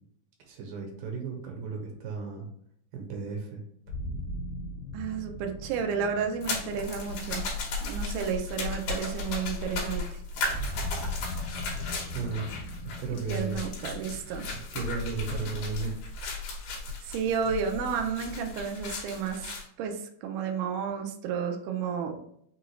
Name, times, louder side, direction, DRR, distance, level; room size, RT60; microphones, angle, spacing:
voice 1, 0.4-2.5 2.9-3.6 12.1-12.5 13.0-13.7 14.5-16.0 16.9-17.0, right 5 dB, 70° right, 1 dB, 2.4 m, -35 dB
sound 1, 3.9-8.8 10.5-16.1, left 1 dB, 60° left, 2.5 m, -41 dB
voice 2, 4.9-7.4 7.8-10.2 13.3-14.5 17.0-19.5 19.8-22.2, right 7 dB, 90° right, 4 dB, 1.7 m, -32 dB
sound 2, 6.4-19.6, left 3 dB, 75° left, 2.7 m, -35 dB
5.8 x 2.4 x 3.1 m, 0.69 s
omnidirectional pair, 4.3 m